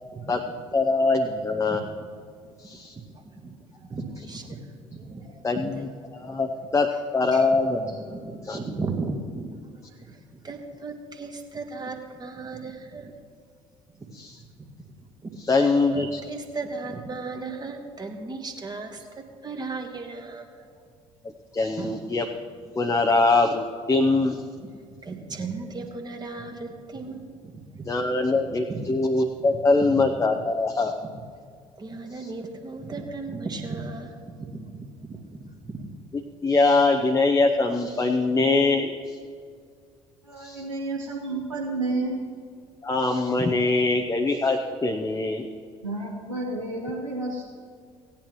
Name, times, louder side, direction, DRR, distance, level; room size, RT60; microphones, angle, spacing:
voice 1, 0.7-1.8 2.6-2.9 5.4-6.9 7.1-8.2 8.4-8.6 14.1-14.4 15.4-16.2 21.2-22.2 22.8-24.4 27.9-30.9 32.2-32.3 36.4-39.2 40.4-40.6 42.8-45.5, left 3 dB, 20° left, 2 dB, 0.8 m, -23 dB
voice 2, 1.7-2.1 3.4-4.7 4.9-5.8 6.2-6.4 7.3-7.5 8.1-9.8 10.1-13.1 14.1-14.2 14.6-14.7 15.0-20.5 21.8-22.0 24.6-24.7 25.0-27.9 28.3-28.4 28.7-28.9 29.5-30.0 31.8-36.0, right 3 dB, 25° right, 4 dB, 1.7 m, -36 dB
voice 3, 40.2-42.2 45.8-47.5, right 2 dB, 90° right, -2 dB, 0.9 m, -30 dB
17.0 x 10.5 x 3.1 m, 2.1 s
figure-of-eight pair, 55°, 16 cm